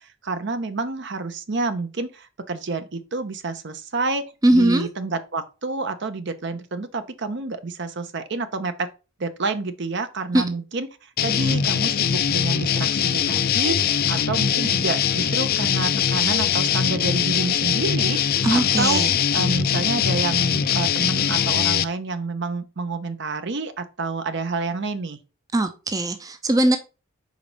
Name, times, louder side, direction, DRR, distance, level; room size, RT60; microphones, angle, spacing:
voice 1, 0.0-4.2 4.5-8.9 9.2-19.0 19.3-25.2, right 3 dB, 60° right, 0.7 m, -28 dB
voice 2, 4.4-4.9 10.3-10.4 18.4-19.1 25.5-26.8, right 1 dB, 15° right, 0.5 m, -20 dB
sound 1, 11.2-21.8, left 8 dB, 45° left, 0.4 m, -22 dB
5.1 x 4.0 x 5.2 m
head